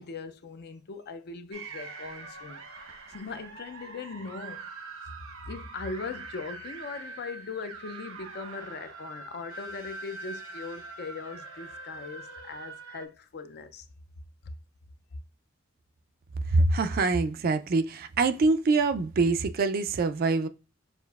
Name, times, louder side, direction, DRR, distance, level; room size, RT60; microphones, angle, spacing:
voice 1, 0.0-2.6 3.1-4.7 5.0-13.9, left 4 dB, 50° left, 0.5 m, -40 dB
sound 1, 1.5-13.1, right 3 dB, 85° right, 1.0 m, -43 dB
voice 2, 16.5-20.5, right 3 dB, 45° right, 0.4 m, -24 dB
6.5 x 2.5 x 2.3 m
head